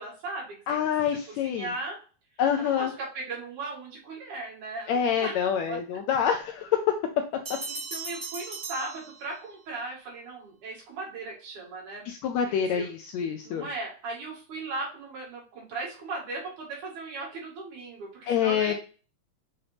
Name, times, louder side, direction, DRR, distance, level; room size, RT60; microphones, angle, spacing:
voice 1, 0.0-0.6 1.3-2.0 2.6-5.8 7.7-12.1 12.4-12.9 13.4-18.7, right 3 dB, 70° right, -3 dB, 3.7 m, -37 dB
voice 2, 0.7-1.7 2.4-2.9 4.9-6.9 12.1-13.7 18.3-18.7, left 8 dB, 80° left, 5 dB, 1.6 m, -26 dB
sound 1, 7.4-9.7, right 3 dB, 35° right, 0.9 m, -38 dB
6.8 x 4.1 x 3.3 m, 0.38 s
omnidirectional pair, 3.7 m